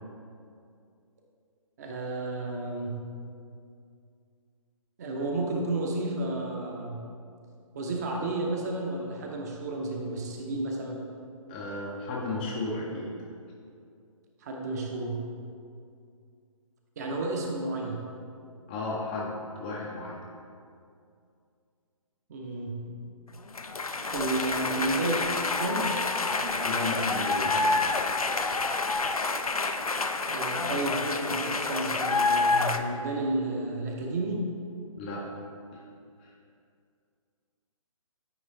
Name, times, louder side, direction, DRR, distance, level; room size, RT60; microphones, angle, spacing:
voice 1, 1.8-2.9 5.0-7.0 7.7-11.0 14.4-15.2 17.0-18.0 22.3-22.9 24.1-25.2 25.6-25.9 26.4-26.5 30.2-34.4, right 2 dB, 30° right, 0 dB, 0.7 m, -32 dB
voice 2, 11.5-13.1 18.7-20.2 26.6-27.7 35.0-35.2 35.7-35.8 36.2-36.3, left 2 dB, 15° left, -4 dB, 0.5 m, -34 dB
sound 1, 23.5-32.8, left 3 dB, 90° left, 0.4 m, -28 dB
9.0 x 3.1 x 4.1 m, 2.4 s
figure-of-eight pair, 140°, 18 cm